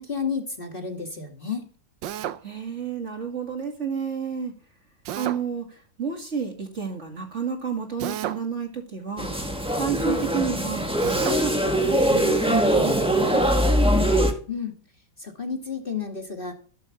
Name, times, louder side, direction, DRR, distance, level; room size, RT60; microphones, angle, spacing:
voice 1, 0.0-1.6 14.5-14.8 15.2-16.5, left 5 dB, 30° left, 3 dB, 2.1 m, -31 dB
Drill, 2.0-2.4 5.0-5.4 8.0-8.4 11.0-11.4, right 11 dB, 85° right, 1.5 m, -31 dB
voice 2, 2.4-4.5 5.1-9.3 9.7-10.8 11.2-13.5, right 6 dB, 40° right, 3 dB, 2.5 m, -30 dB
sound 1, 9.2-14.3, equal, 5° right, 1.6 m, -22 dB
13.5 x 7.4 x 7.2 m, 0.42 s
omnidirectional pair, 1.9 m